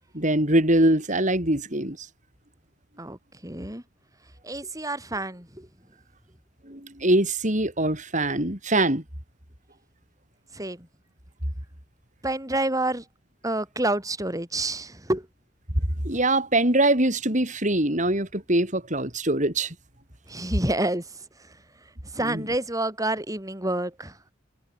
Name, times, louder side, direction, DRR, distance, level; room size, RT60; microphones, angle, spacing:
voice 1, 0.1-2.1 6.6-9.0 15.8-19.7 22.2-22.4, right 1 dB, 40° right, 6.5 m, -23 dB
voice 2, 3.0-3.8 4.4-5.7 10.5-10.9 12.2-13.0 13.4-15.3 20.3-21.6 22.0-24.3, right 1 dB, 15° right, 6.5 m, -29 dB
head